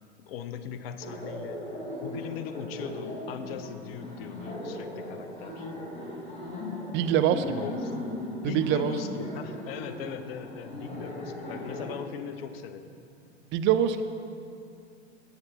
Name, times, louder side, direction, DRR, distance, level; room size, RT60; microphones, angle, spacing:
voice 1, 0.2-1.7 2.0-5.7 7.6-13.0, left 8 dB, 55° left, 10 dB, 0.8 m, -39 dB
Laughter, 1.0-11.9, left 1 dB, 20° left, 2.3 m, -38 dB
voice 2, 6.9-7.7 8.4-8.9 13.5-14.0, right 9 dB, 35° right, 9 dB, 0.6 m, -24 dB
17.0 x 8.7 x 2.8 m, 2.4 s
figure-of-eight pair, 90°, 35 cm